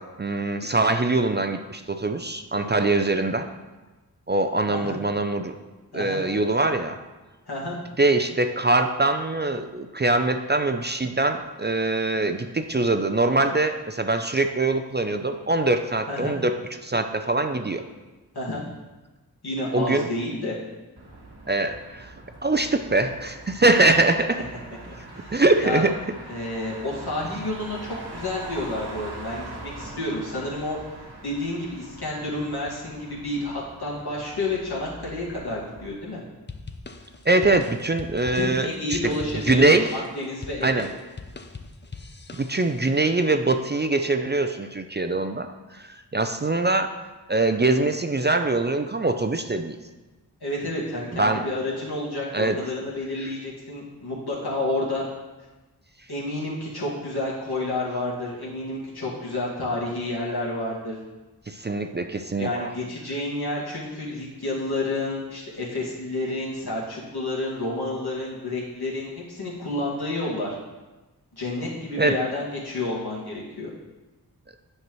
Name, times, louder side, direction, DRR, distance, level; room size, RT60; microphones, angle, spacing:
voice 1, 0.0-3.5 4.3-5.5 5.9-7.0 8.0-17.8 19.7-20.1 21.5-22.1 22.4-24.4 25.3-26.0 37.3-39.1 39.5-39.9 40.6-40.9 42.4-46.9 47.3-49.8 51.1-51.4 52.3-52.6 61.5-62.7 72.0-72.2, right 2 dB, 25° right, 7 dB, 0.4 m, -23 dB
voice 2, 7.5-7.8 16.1-16.3 18.3-18.6 19.4-20.6 25.1-25.3 25.6-25.8 26.3-30.8 31.2-36.2 38.3-40.8 50.4-55.1 56.1-61.0 62.4-70.6 71.3-73.7, left 2 dB, 75° left, -6 dB, 2.1 m, -30 dB
Motor vehicle (road), 21.0-35.9, right 2 dB, 85° right, 1.4 m, -42 dB
sound 1, 36.5-42.9, left 3 dB, 30° left, 0.6 m, -41 dB
9.4 x 5.8 x 3.1 m, 1.2 s
wide cardioid pair, 55°, 39 cm